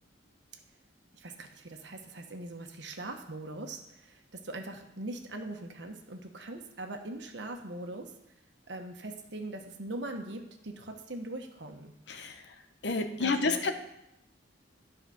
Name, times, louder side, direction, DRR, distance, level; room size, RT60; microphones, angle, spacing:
voice 1, 1.1-8.1 8.7-11.9 13.2-13.7, right 2 dB, 70° right, 4 dB, 1.2 m, -41 dB
voice 2, 12.8-13.7, left 3 dB, 65° left, 7 dB, 0.8 m, -29 dB
11.0 x 4.9 x 6.3 m, 0.84 s
head